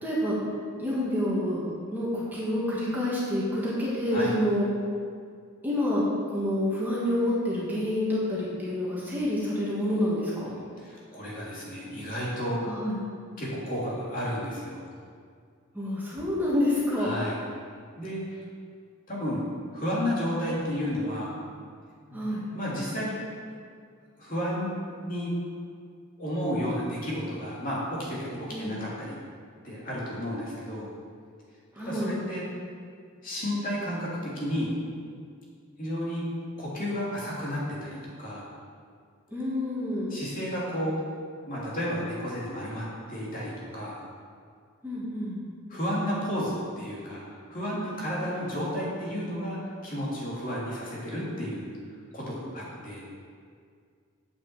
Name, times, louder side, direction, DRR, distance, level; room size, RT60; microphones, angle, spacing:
voice 1, 0.0-0.4 0.8-4.7 5.6-10.5 12.6-13.0 15.7-17.2 22.1-22.4 28.5-28.8 31.7-32.2 39.3-40.2 44.8-45.4, left 1 dB, 10° right, -8 dB, 2.2 m, -28 dB
voice 2, 10.8-12.6 13.4-14.9 16.9-17.4 18.0-18.4 19.1-19.4 19.7-21.3 22.1-22.3 22.5-23.2 24.2-24.7 25.0-25.3 26.2-29.2 29.6-30.9 31.8-32.4 33.2-34.7 35.8-36.2 36.6-38.5 40.1-41.0 41.4-44.0 45.7-47.2 47.5-51.7 52.1-53.0, equal, 40° left, -6 dB, 3.0 m, -32 dB
8.6 x 6.8 x 7.7 m, 2.1 s
head